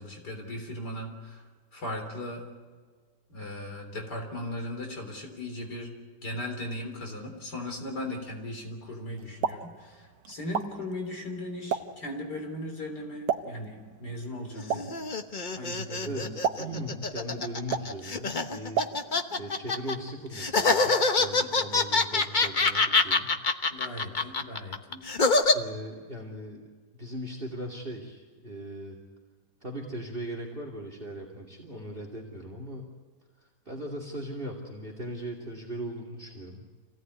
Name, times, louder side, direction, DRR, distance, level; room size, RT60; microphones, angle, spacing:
voice 1, 0.0-1.4 1.7-2.4 3.3-5.9 6.2-15.0 15.6-16.3 16.7-16.9 21.4-21.5 23.7-25.0, left 1 dB, 70° left, 3 dB, 4.3 m, -38 dB
Explosion, 9.2-19.4, right 7 dB, 80° right, 1.7 m, -36 dB
sound 1, 14.6-19.9 20.3-25.5, left 3 dB, 30° left, 1.0 m, -25 dB
voice 2, 16.6-18.9 19.4-23.3 25.5-26.6 27.0-29.0 29.6-32.9 33.4-36.6, right 1 dB, 30° right, 1 dB, 2.8 m, -39 dB
27.0 x 17.5 x 9.5 m, 1.5 s
omnidirectional pair, 1.8 m